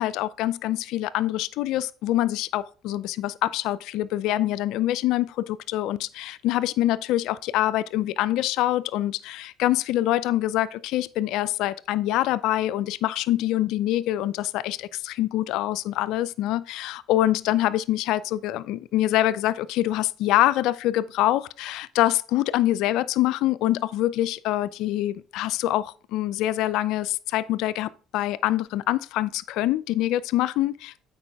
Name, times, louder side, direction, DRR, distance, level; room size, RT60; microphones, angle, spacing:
voice 1, 0.0-31.0, left 14 dB, 70° left, 0.4 m, -25 dB
8.1 x 5.2 x 3.5 m
hypercardioid pair, 65°, 0 cm